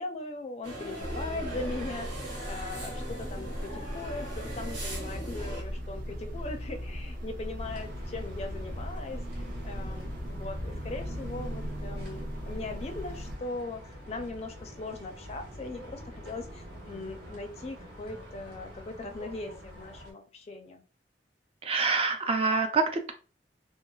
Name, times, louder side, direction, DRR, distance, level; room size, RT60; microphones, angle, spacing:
voice 1, 0.0-20.8, left 2 dB, 35° left, 5 dB, 0.4 m, -40 dB
sound 1, 0.6-5.6, right 1 dB, 85° right, 1.5 m, -40 dB
sound 2, 1.0-13.4, equal, 50° right, 0.8 m, -38 dB
sound 3, 7.6-20.1, equal, 65° right, 1.2 m, -45 dB
voice 2, 21.6-23.1, right 4 dB, 35° right, 6 dB, 0.4 m, -26 dB
3.0 x 2.2 x 2.3 m, 0.35 s
head